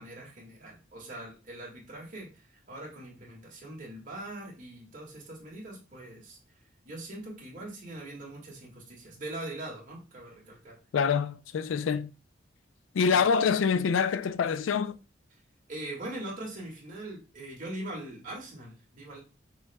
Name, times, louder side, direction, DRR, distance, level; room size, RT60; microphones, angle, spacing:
voice 1, 0.0-6.4 6.8-10.8 15.7-19.2, right 1 dB, 45° right, 1.7 m, -42 dB
voice 2, 10.9-12.1 12.9-15.0, left 6 dB, 90° left, 0.4 m, -26 dB
6.1 x 3.4 x 2.2 m
head